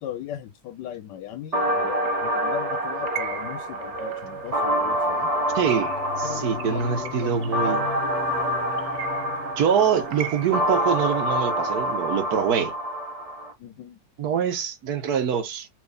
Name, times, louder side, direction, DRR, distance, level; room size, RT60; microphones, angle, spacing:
voice 1, 0.0-5.3 6.2-7.5 13.6-14.0, left 10 dB, 80° left, 1.3 m, -38 dB
sound 1, 1.5-13.5, equal, 40° right, 0.5 m, -27 dB
sound 2, 1.8-11.6, right 11 dB, 80° right, 0.7 m, -40 dB
sound 3, 3.2-12.7, left 6 dB, 50° left, 0.7 m, -42 dB
voice 2, 5.5-5.9 6.2-7.8 9.6-12.7 14.2-15.7, right 7 dB, 65° right, 1.3 m, -24 dB
4.6 x 2.7 x 3.4 m
omnidirectional pair, 1.9 m